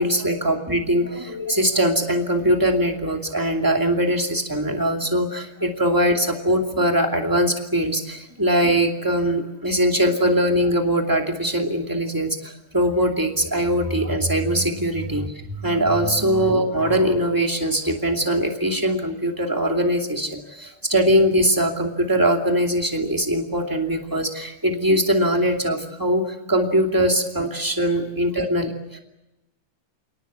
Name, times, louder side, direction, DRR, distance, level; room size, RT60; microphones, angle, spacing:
voice 1, 0.0-26.2 26.5-29.0, equal, 10° right, 2 dB, 1.3 m, -21 dB
29.0 x 18.5 x 8.3 m, 0.95 s
omnidirectional pair, 4.9 m